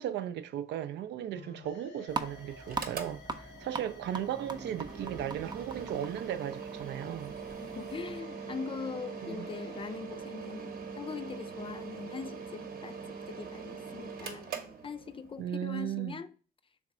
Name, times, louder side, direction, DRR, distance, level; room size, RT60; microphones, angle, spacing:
voice 1, 0.0-7.4 9.2-9.5 15.4-16.2, right 11 dB, 85° right, 0.4 m, -36 dB
sound 1, 1.3-10.0, left 4 dB, 75° left, 0.8 m, -55 dB
sound 2, 2.1-8.2, right 3 dB, 25° right, 0.5 m, -42 dB
Mechanical fan, 2.6-15.4, right 5 dB, 55° right, 0.8 m, -43 dB
voice 2, 7.6-14.5 14.8-16.3, left 5 dB, 30° left, 0.4 m, -41 dB
3.5 x 3.2 x 4.8 m
cardioid pair, 85°, 17 cm